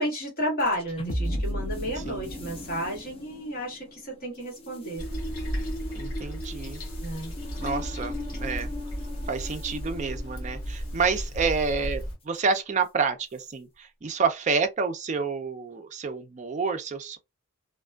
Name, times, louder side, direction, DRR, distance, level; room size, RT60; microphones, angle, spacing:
voice 1, 0.0-5.0 7.0-7.3, equal, 45° left, 1.5 m, -32 dB
sound 1, 0.6-11.1, left 1 dB, 25° left, 0.5 m, -37 dB
voice 2, 2.1-2.4 5.9-6.8 7.6-8.7 9.3-17.2, right 5 dB, 35° right, 0.4 m, -29 dB
Toilet flush, 5.0-12.2, equal, 85° left, 0.9 m, -34 dB
2.4 x 2.3 x 2.3 m
head